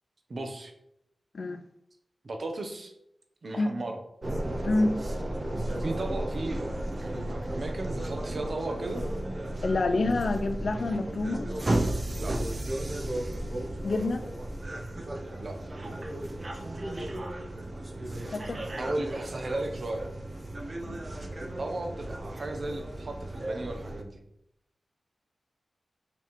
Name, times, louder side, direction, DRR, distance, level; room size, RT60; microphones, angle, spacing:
voice 1, 0.3-0.7 2.2-2.9 3.4-4.0 5.8-6.6 7.0-9.0 12.1-12.4 15.4-15.6 18.8-20.1 21.6-24.2, right 2 dB, 55° right, 1.0 m, -35 dB
sound 1, 4.2-24.0, right 1 dB, 35° right, 0.8 m, -34 dB
voice 2, 4.6-5.0 9.6-11.5 13.8-14.3 18.3-18.6 20.9-21.0, left 2 dB, 65° left, 0.6 m, -27 dB
6.0 x 3.4 x 4.5 m
wide cardioid pair, 80°, 0 cm